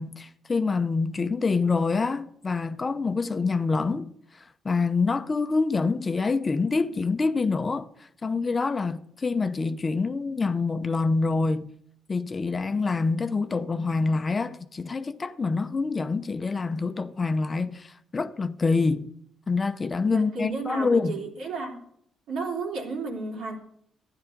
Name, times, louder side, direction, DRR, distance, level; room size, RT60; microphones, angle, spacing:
voice 1, 0.0-4.1 4.6-7.9 8.2-11.7 12.1-19.1 19.5-21.2, left 4 dB, 30° left, 0.7 m, -26 dB
voice 2, 20.1-21.8 22.3-23.6, right 3 dB, 80° right, 3.3 m, -32 dB
13.0 x 10.0 x 5.2 m
cardioid pair, 90°, 0 cm